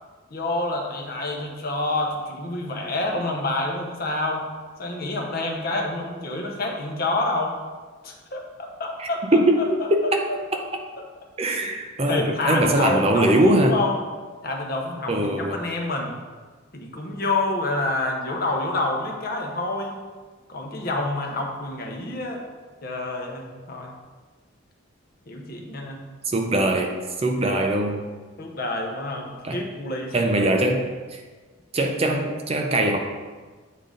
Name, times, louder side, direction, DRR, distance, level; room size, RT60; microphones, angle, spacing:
voice 1, 0.3-4.4 4.8-7.6 8.0-10.4 11.4-11.7 12.1-13.9 14.4-16.2 16.7-20.0 20.5-22.4 22.8-23.9 25.3-26.0 27.4-27.6 28.4-30.1 30.4-30.9, left 2 dB, 45° left, 1 dB, 0.9 m, -28 dB
voice 2, 9.0-9.5 9.9-10.0 11.4-13.7 15.1-15.6 26.3-28.0 29.4-29.6 30.1-31.2 31.7-33.0, right 1 dB, 30° right, 3 dB, 0.5 m, -22 dB
8.4 x 3.8 x 3.8 m, 1.4 s
head